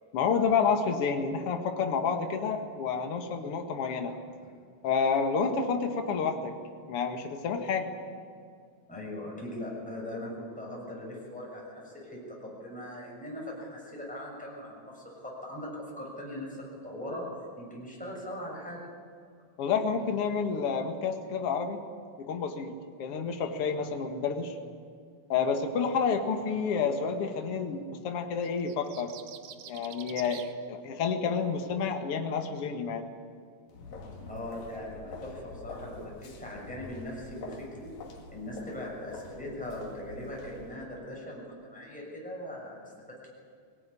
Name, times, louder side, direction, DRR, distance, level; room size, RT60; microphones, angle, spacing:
voice 1, 0.1-4.2 4.8-6.5 6.9-7.9 19.6-21.8 22.2-24.6 25.3-29.1 29.7-33.1, left 5 dB, 55° left, 4 dB, 2.5 m, -29 dB
voice 2, 8.9-17.3 17.6-18.9 34.3-38.0 38.3-43.3, left 1 dB, ahead, -3 dB, 6.4 m, -40 dB
sound 1, 28.4-30.5, right 10 dB, 90° right, 2.6 m, -46 dB
sound 2, 33.7-40.7, left 3 dB, 75° left, 3.6 m, -46 dB
22.5 x 18.5 x 9.9 m, 2.2 s
omnidirectional pair, 3.4 m